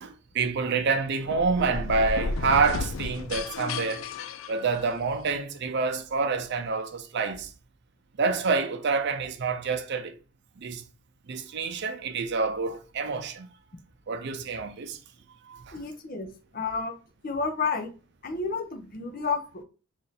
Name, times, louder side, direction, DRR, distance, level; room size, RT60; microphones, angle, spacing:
voice 1, 0.0-4.1 4.5-7.5 8.2-10.1 10.6-10.8 11.3-13.5 14.1-15.0 15.5-15.8, right 4 dB, 55° right, 0.5 m, -27 dB
sound 1, 1.2-5.2, left 4 dB, 75° left, 0.3 m, -33 dB
voice 2, 15.7-16.3 16.5-17.0 17.2-17.9 18.2-19.6, left 4 dB, 45° left, 0.6 m, -30 dB
3.2 x 2.7 x 4.0 m
head